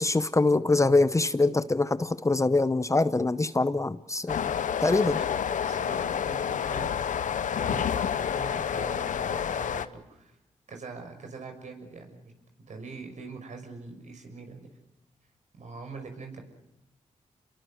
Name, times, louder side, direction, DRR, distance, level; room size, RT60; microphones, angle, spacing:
voice 1, 0.0-4.5 4.8-5.2, left 2 dB, 25° left, 14 dB, 0.9 m, -24 dB
sound 1, 4.3-9.9, left 8 dB, 75° left, 1.0 m, -29 dB
voice 2, 5.1-10.4 10.7-12.3 12.7-14.7 15.6-16.4, right 4 dB, 65° right, 4 dB, 6.3 m, -43 dB
28.5 x 22.0 x 6.5 m, 0.92 s
cardioid pair, 60°, 13 cm